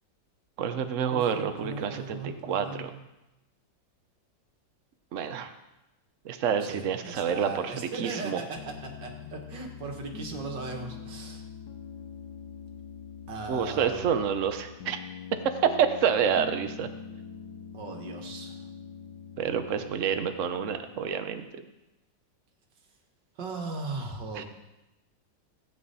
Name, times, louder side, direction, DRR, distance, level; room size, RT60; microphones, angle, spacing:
voice 1, 0.6-2.9 5.1-5.5 6.2-8.4 13.5-15.0 15.6-16.9 19.4-21.5 24.4-24.5, right 7 dB, 55° right, 8 dB, 1.0 m, -28 dB
voice 2, 1.1-3.0 6.6-11.5 13.3-14.1 17.7-18.6 23.4-24.4, right 3 dB, 75° right, 3 dB, 2.2 m, -38 dB
Piano, 8.6-21.0, left 7 dB, 75° left, 1.3 m, -44 dB
16.0 x 8.7 x 4.2 m, 0.97 s
omnidirectional pair, 2.0 m